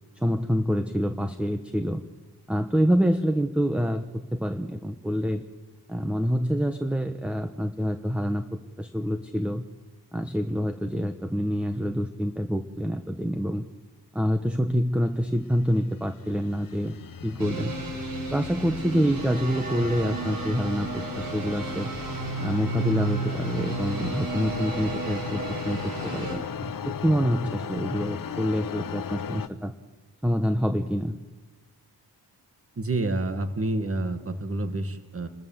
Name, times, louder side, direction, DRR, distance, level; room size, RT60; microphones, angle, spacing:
voice 1, 0.1-2.0 2.5-5.4 5.9-9.6 10.1-13.6 14.1-17.0 17.2-17.8 18.3-21.9 22.4-29.7 30.2-31.2, equal, 5° right, 8 dB, 1.0 m, -26 dB
sound 1, 15.4-29.5, left 7 dB, 55° left, 1.1 m, -37 dB
sound 2, 17.4-26.4, right 2 dB, 55° right, 5.8 m, -33 dB
voice 2, 32.8-35.3, right 2 dB, 35° right, 8 dB, 2.1 m, -28 dB
28.5 x 21.0 x 7.4 m, 1.2 s
wide cardioid pair, 175°, 40 cm